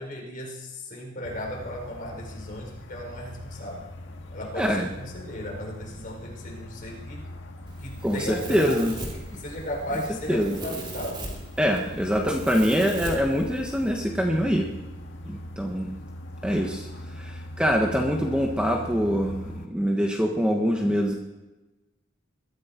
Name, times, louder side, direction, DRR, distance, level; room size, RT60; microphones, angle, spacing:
voice 1, 0.0-3.9 4.3-7.3 7.8-8.8 9.1-11.2, left 1 dB, 40° left, 0 dB, 5.0 m, -35 dB
sound 1, 1.2-19.7, left 1 dB, 65° left, 1.9 m, -41 dB
voice 2, 4.5-4.9 8.0-9.0 10.3-10.6 11.6-14.7 15.2-15.9 16.4-16.9 17.2-21.1, equal, 5° right, 1 dB, 1.5 m, -24 dB
Domestic sounds home sounds, 7.7-13.9, right 1 dB, 25° right, 3.3 m, -39 dB
22.0 x 14.0 x 4.6 m, 1.0 s
head